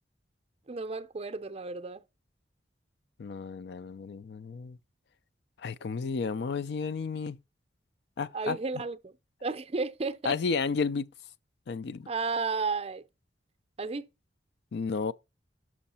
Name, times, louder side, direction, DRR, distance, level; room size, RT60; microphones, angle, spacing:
voice 1, 0.7-2.0 8.3-9.1 9.4-10.3 12.1-13.0 13.8-14.1, right 4 dB, 35° right, 0.5 m, -33 dB
voice 2, 3.2-4.8 5.6-7.4 8.2-8.6 10.2-11.1 11.7-12.1 14.7-15.1, left 5 dB, 65° left, 0.4 m, -32 dB
6.3 x 5.5 x 4.2 m
head